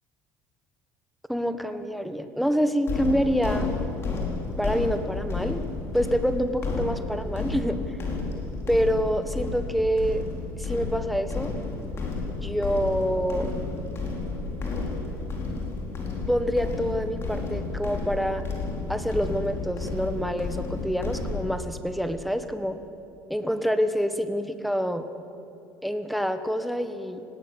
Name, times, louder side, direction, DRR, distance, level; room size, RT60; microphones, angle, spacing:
voice 1, 1.3-3.7 4.6-5.6 5.9-7.8 8.7-10.2 10.6-11.5 12.4-13.5 16.3-18.4 18.9-22.8 23.3-25.1 25.8-27.2, equal, ahead, 9 dB, 1.4 m, -26 dB
sound 1, 2.9-21.4, left 3 dB, 40° left, 4.7 m, -31 dB
19.5 x 17.0 x 8.0 m, 2.9 s
cardioid pair, 115°, 7 cm